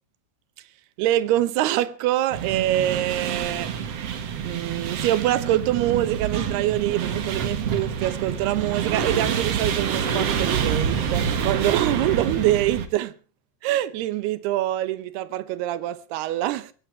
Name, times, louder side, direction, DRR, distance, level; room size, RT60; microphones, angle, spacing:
voice 1, 1.0-3.8 4.4-13.1 13.6-16.7, right 14 dB, 75° right, 2.8 m, -25 dB
sound 1, 2.3-12.9, right 7 dB, 55° right, 1.7 m, -27 dB
22.5 x 16.0 x 3.2 m
omnidirectional pair, 5.0 m